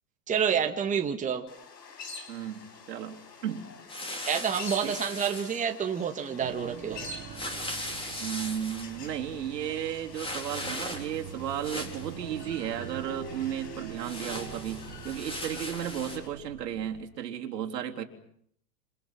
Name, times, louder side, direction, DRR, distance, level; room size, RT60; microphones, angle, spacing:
voice 1, 0.3-1.4 4.3-7.1, right 7 dB, 15° right, 4 dB, 2.0 m, -28 dB
sound 1, 1.5-16.3, left 3 dB, 80° left, 5.3 m, -47 dB
voice 2, 2.3-3.7 4.8-5.0 8.2-18.0, right 10 dB, 75° right, 2 dB, 3.5 m, -34 dB
sound 2, 3.9-5.6 7.3-8.9 10.1-11.2 11.5-12.1 14.0-16.2, left 1 dB, 10° left, 4.4 m, -38 dB
sound 3, 6.4-17.0, right 9 dB, 35° right, 3.2 m, -44 dB
28.0 x 28.0 x 6.0 m, 0.66 s
hypercardioid pair, 120°, 49 cm